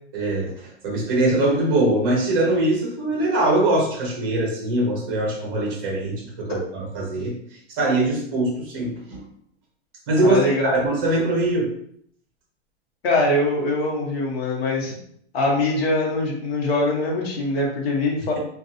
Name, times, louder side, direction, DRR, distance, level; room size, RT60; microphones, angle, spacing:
voice 1, 0.1-6.6 6.9-7.3 7.8-9.2 10.1-11.7, right 2 dB, 20° right, -3 dB, 0.6 m, -22 dB
voice 2, 10.2-10.7 13.0-14.9 15.3-18.4, left 2 dB, 65° left, -3 dB, 1.1 m, -23 dB
2.6 x 2.3 x 2.6 m, 0.67 s
supercardioid pair, 180°, 33 cm